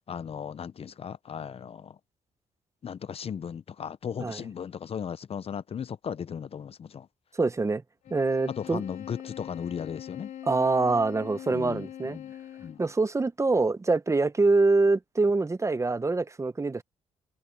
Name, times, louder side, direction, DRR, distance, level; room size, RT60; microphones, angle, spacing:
voice 1, 0.1-2.0 2.8-7.1 8.5-10.3 11.5-12.3 12.6-12.8, left 7 dB, 45° left, 0.7 m, -36 dB
voice 2, 7.3-7.8 8.1-8.8 10.4-12.2 12.8-16.8, right 3 dB, 20° right, 0.9 m, -25 dB
sound 1, 8.0-12.9, left 11 dB, 75° left, 4.0 m, -42 dB
cardioid pair, 85°, 14 cm